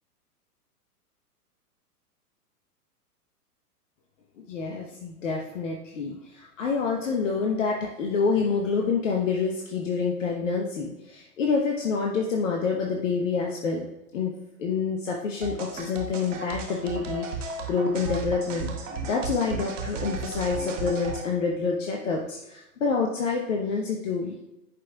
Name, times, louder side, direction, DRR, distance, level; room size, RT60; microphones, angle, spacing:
voice 1, 4.4-13.8 14.1-14.3 14.6-18.7 19.0-24.4, left 5 dB, 50° left, 0 dB, 1.1 m, -27 dB
sound 1, 15.4-21.2, right 4 dB, 50° right, 1.2 m, -35 dB
11.0 x 5.3 x 2.3 m, 0.93 s
figure-of-eight pair, 105°, 47 cm